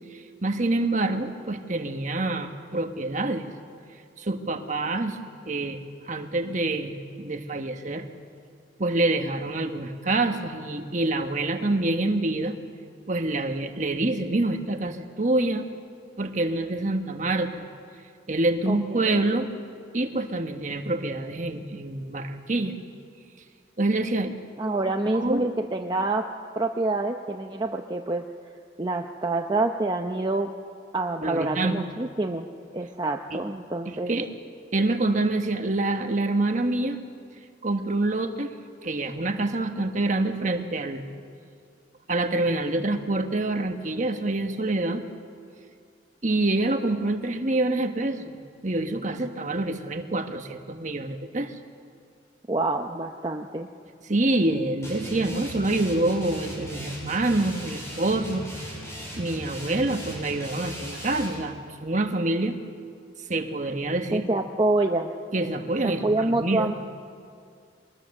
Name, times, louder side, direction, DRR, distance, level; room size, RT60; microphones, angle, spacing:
voice 1, 0.1-3.5 4.2-5.2 5.5-5.8 6.1-8.1 8.8-12.6 13.1-15.7 16.2-17.7 18.3-19.5 19.9-22.8 23.8-24.3 25.1-25.5 31.2-31.9 33.3-33.5 33.8-34.3 34.7-37.0 37.6-38.5 38.8-41.1 42.1-45.0 46.2-51.5 54.1-58.8 59.1-62.6 63.3-64.3 65.3-66.7, right 2 dB, 40° right, 6 dB, 1.3 m, -26 dB
voice 2, 18.7-19.1 24.6-26.3 26.6-28.2 28.8-30.5 30.9-32.5 32.7-34.1 52.5-53.7 64.1-65.1 65.8-66.7, right 2 dB, 25° right, 3 dB, 0.7 m, -26 dB
sound 1, 54.8-61.4, equal, 15° left, 5.7 m, -38 dB
23.5 x 20.5 x 6.6 m, 2.3 s
head